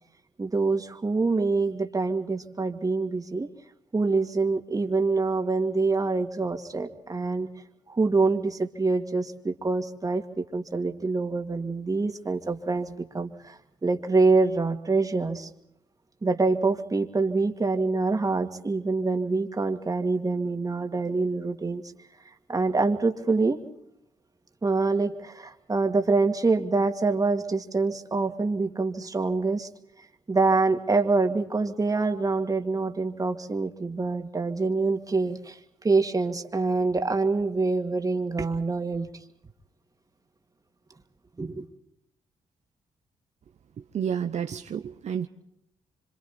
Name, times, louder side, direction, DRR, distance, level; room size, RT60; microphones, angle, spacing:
voice 1, 0.4-3.5 3.9-7.5 7.9-15.5 16.2-21.8 22.5-23.6 24.6-29.7 30.3-39.1 41.4-41.6, right 3 dB, 25° right, 5 dB, 2.3 m, -25 dB
voice 2, 43.9-45.3, right 8 dB, 60° right, 6 dB, 0.9 m, -30 dB
27.0 x 26.0 x 4.3 m, 0.78 s
cardioid pair, 75°, 13 cm